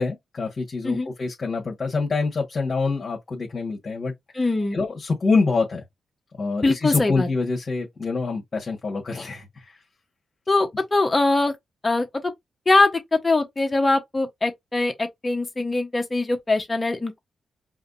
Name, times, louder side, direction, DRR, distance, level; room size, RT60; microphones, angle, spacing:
voice 1, 0.0-4.1 4.7-5.8 6.4-9.8, left 4 dB, 40° left, 1.6 m, -26 dB
voice 2, 4.3-4.8 6.6-7.3 10.5-11.5 11.8-12.1 12.7-17.2, left 2 dB, 25° left, 1.1 m, -22 dB
4.9 x 2.7 x 2.6 m
cardioid pair, 90°, 0 cm